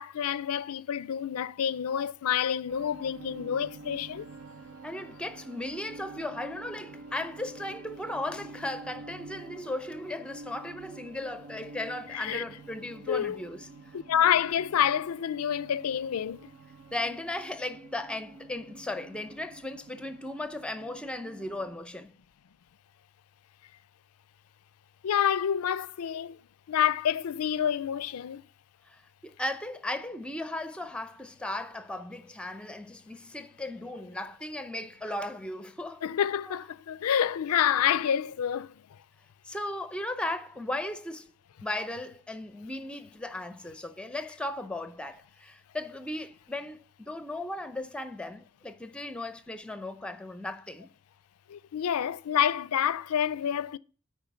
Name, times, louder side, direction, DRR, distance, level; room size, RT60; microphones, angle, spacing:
voice 1, 0.0-4.3 12.1-12.4 13.1-13.4 13.9-16.5 25.0-26.4 26.7-28.4 36.0-38.7 51.5-53.8, left 9 dB, 80° left, 0.4 m, -28 dB
Mysterious Misty Morning, 2.7-21.8, right 3 dB, 65° right, 0.7 m, -48 dB
voice 2, 4.8-13.7 16.9-22.1 28.9-36.0 36.5-36.6 39.4-41.3 41.6-50.9, left 1 dB, 5° left, 0.6 m, -36 dB
8.8 x 4.8 x 6.9 m
head